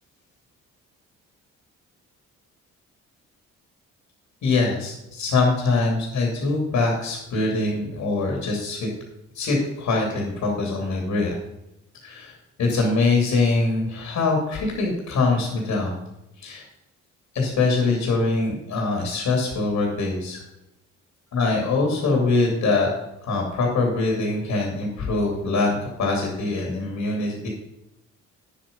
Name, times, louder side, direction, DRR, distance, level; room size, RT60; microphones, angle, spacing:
voice 1, 4.4-8.9 9.3-11.4 12.0-15.9 16.4-16.6 17.3-20.4 21.3-22.9 23.2-27.5, left 3 dB, 70° left, 0 dB, 2.7 m, -23 dB
9.4 x 7.5 x 5.3 m, 0.89 s
cardioid pair, 90°, 30 cm